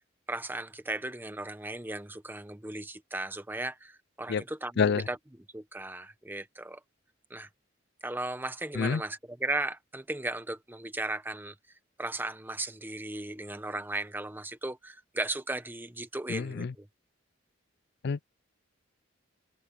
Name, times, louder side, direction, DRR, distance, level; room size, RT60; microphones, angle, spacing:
voice 1, 0.3-5.2 5.5-6.8 7.3-7.5 8.0-11.5 12.0-16.9, right 2 dB, 10° right, 1.1 m, -36 dB
voice 2, 16.3-16.7 18.0-18.3, left 5 dB, 55° left, 0.4 m, -27 dB
head